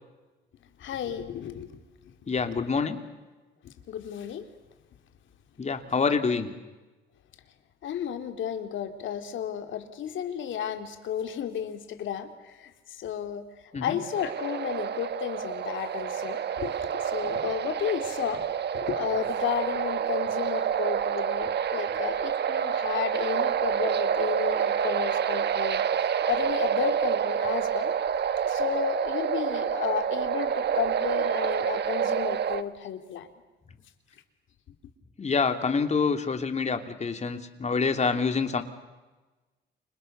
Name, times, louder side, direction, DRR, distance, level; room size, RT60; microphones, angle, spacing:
voice 1, 0.8-1.7 2.0-2.1 2.5-2.9 3.6-4.4 7.8-13.4 13.8-18.5 18.7-27.9 28.5-33.3, left 9 dB, 75° left, 7 dB, 3.2 m, -33 dB
voice 2, 2.3-3.0 5.6-6.5 13.7-14.0 35.2-38.6, left 5 dB, 35° left, 7 dB, 3.1 m, -26 dB
sound 1, 14.1-32.6, right 8 dB, 60° right, 1.4 m, -28 dB
30.0 x 27.0 x 6.9 m, 1.2 s
cardioid pair, 90°, 20 cm